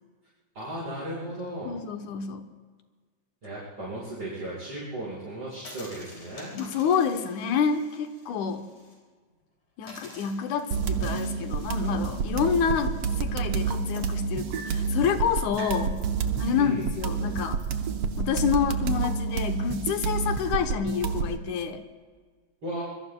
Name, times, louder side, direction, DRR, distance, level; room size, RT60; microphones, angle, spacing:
voice 1, 0.5-1.8 3.4-6.5 16.5-16.9 22.6-22.8, right 1 dB, 40° right, -9 dB, 6.1 m, -36 dB
voice 2, 1.6-2.5 6.5-8.7 9.8-16.0 16.4-17.6 18.2-21.8, left 7 dB, 90° left, 7 dB, 2.5 m, -28 dB
sound 1, 5.5-9.0 9.3-9.4 9.8-18.2, left 2 dB, 65° left, 6.0 m, -51 dB
sound 2, 10.7-21.4, right 5 dB, 65° right, 1.8 m, -29 dB
sound 3, 13.9-15.0 15.6-16.0 17.0-17.1 17.5-17.9 18.6-18.7, right 6 dB, 85° right, 2.5 m, -44 dB
26.0 x 21.5 x 2.3 m, 1.5 s
omnidirectional pair, 3.3 m